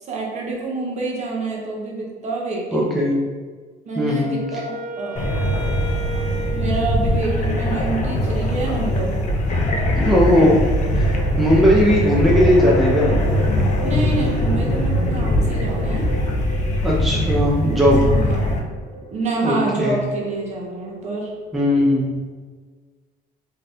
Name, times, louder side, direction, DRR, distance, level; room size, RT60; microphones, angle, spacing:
voice 1, 0.1-3.1 3.9-5.3 6.5-9.2 13.8-16.1 17.9-18.6 19.1-21.3, right 3 dB, 45° right, -2 dB, 0.7 m, -27 dB
voice 2, 2.7-3.2 4.0-4.4 9.9-10.7 11.0-11.1 11.4-13.1 16.8-18.0 19.4-20.0 21.5-22.1, left 1 dB, ahead, -4 dB, 0.5 m, -17 dB
Wind instrument woodwind instrument, 3.9-7.8, right 5 dB, 70° right, 1.2 m, -34 dB
sound 1, 5.2-18.6, equal, 45° left, 0.5 m, -21 dB
sound 2, 10.3-21.7, right 1 dB, 90° right, 1.2 m, -35 dB
2.7 x 2.3 x 3.4 m, 1.4 s
cardioid pair, 110°, 17 cm